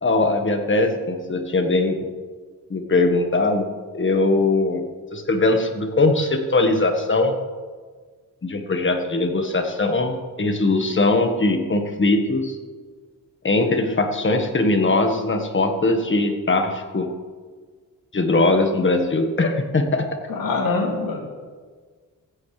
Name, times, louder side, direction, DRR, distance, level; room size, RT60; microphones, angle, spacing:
voice 1, 0.0-2.0 2.7-4.8 5.1-7.4 8.4-12.5 13.4-17.1 18.1-20.2, left 2 dB, 35° left, 5 dB, 1.5 m, -21 dB
voice 2, 20.3-21.2, left 3 dB, 90° left, 0 dB, 2.5 m, -24 dB
16.0 x 15.0 x 3.4 m, 1.5 s
wide cardioid pair, 105°, 34 cm